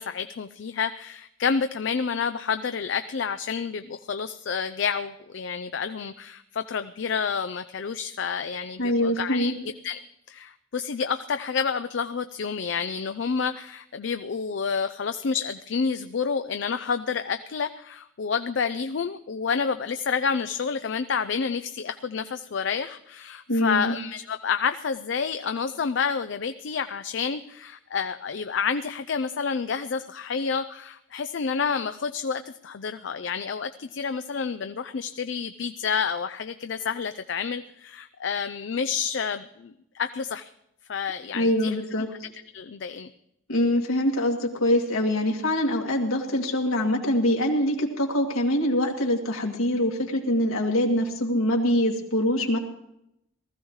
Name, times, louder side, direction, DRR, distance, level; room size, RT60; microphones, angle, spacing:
voice 1, 0.0-9.5 9.8-10.0 10.3-40.5 40.9-42.2 42.5-43.1, left 6 dB, 60° left, 10 dB, 0.4 m, -29 dB
voice 2, 8.8-9.5 23.5-23.9 41.3-42.1 43.5-52.6, left 1 dB, 90° left, 1 dB, 2.2 m, -24 dB
19.5 x 14.5 x 3.2 m, 0.79 s
head